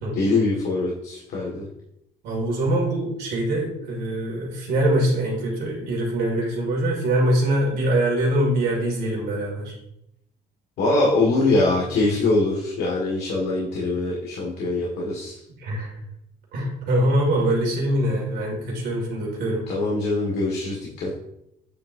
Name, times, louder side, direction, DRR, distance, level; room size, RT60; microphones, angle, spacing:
voice 1, 0.1-1.7 10.8-15.3 19.7-21.1, left 2 dB, 75° left, -3 dB, 1.7 m, -23 dB
voice 2, 2.2-9.7 15.6-15.9 16.5-19.6, right 1 dB, 75° right, -3 dB, 2.1 m, -23 dB
8.7 x 6.2 x 2.6 m, 0.80 s
cardioid pair, 110°, 17 cm